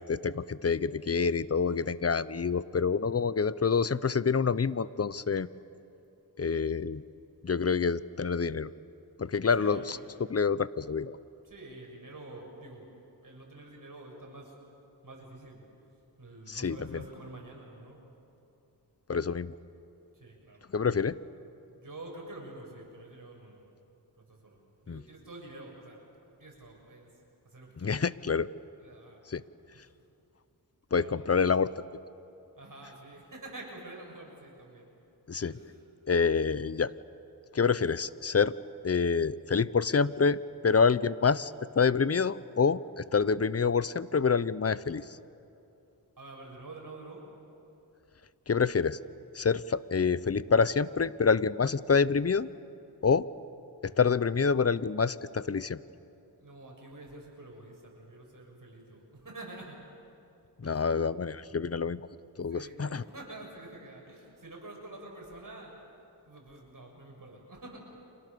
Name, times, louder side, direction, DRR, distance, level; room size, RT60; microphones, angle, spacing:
voice 1, 0.1-5.5 6.4-7.0 7.4-8.7 9.2-10.0 10.3-11.2 16.5-17.0 19.1-19.5 20.7-21.2 24.9-25.0 27.8-28.5 29.3-29.4 30.9-31.7 35.3-35.5 36.1-36.9 37.5-38.6 38.8-45.0 48.5-49.0 49.3-52.5 53.0-53.3 53.8-55.8 60.6-62.0 62.4-63.0, left 5 dB, 35° left, 17 dB, 0.8 m, -27 dB
voice 2, 9.6-10.0 11.4-12.9 13.2-14.5 15.0-15.6 16.2-18.0 20.1-20.7 21.7-23.6 24.3-26.0 26.4-27.1 27.5-27.9 28.8-29.2 29.7-29.8 31.0-31.4 32.6-34.8 35.4-35.7 46.2-47.2 56.4-59.8 60.6-60.8 62.5-65.7 66.2-67.8, right 2 dB, 50° right, -1 dB, 7.5 m, -47 dB
30.0 x 26.5 x 6.9 m, 2.7 s
cardioid pair, 50°, 41 cm